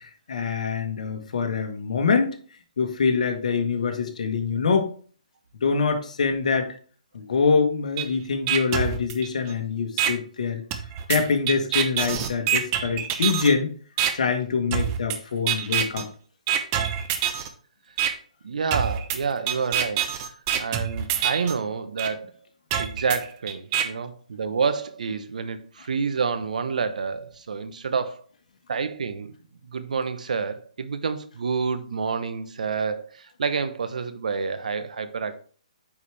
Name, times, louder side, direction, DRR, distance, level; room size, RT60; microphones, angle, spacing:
voice 1, 0.0-2.4 2.8-4.9 5.6-6.7 7.1-10.6 11.1-13.7 14.1-16.1, left 5 dB, 65° left, 1.5 m, -24 dB
sound 1, 8.0-8.1 8.5-9.5 10.0-10.1 10.7-13.5 14.0-14.1 14.7-15.2 15.5-16.0 16.5-17.5 18.0-18.1 18.7-21.5 22.0-22.1 22.7-23.8, right 9 dB, 30° right, 0.9 m, -25 dB
voice 2, 18.4-22.3 22.7-28.2 28.7-29.3 29.6-35.4, right 5 dB, 70° right, 1.0 m, -28 dB
8.7 x 4.8 x 3.4 m
hypercardioid pair, 145°, 4 cm